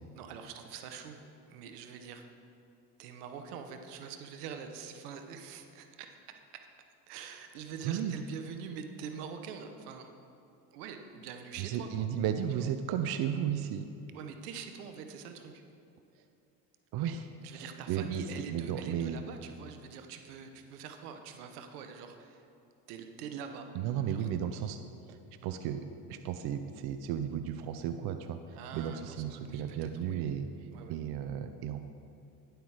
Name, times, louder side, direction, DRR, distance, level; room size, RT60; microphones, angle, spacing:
voice 1, 0.1-2.3 3.0-6.1 7.1-10.1 10.7-12.1 14.1-15.6 17.4-22.5 22.9-23.7 24.1-24.3 28.5-30.3 30.7-30.9, right 6 dB, 80° right, 6 dB, 1.0 m, -44 dB
voice 2, 7.8-8.2 11.6-13.9 16.9-19.2 23.7-24.8 25.1-30.5 30.9-31.8, right 9 dB, 55° right, 8 dB, 0.7 m, -34 dB
10.5 x 7.9 x 4.9 m, 2.7 s
hypercardioid pair, 75°, 45 cm